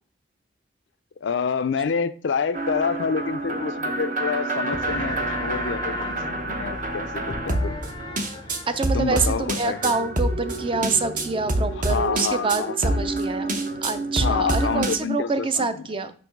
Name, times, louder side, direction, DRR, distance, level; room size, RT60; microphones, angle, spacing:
voice 1, 1.2-7.8 8.9-10.1 11.8-13.2 14.2-15.9, left 6 dB, 75° left, 0.4 m, -28 dB
sound 1, 2.5-15.0, right 1 dB, 45° right, 0.9 m, -27 dB
sound 2, 4.7-12.0, left 2 dB, 25° left, 0.5 m, -37 dB
voice 2, 8.7-13.6 13.8-16.1, right 4 dB, 30° right, 0.5 m, -26 dB
6.9 x 3.0 x 6.0 m
head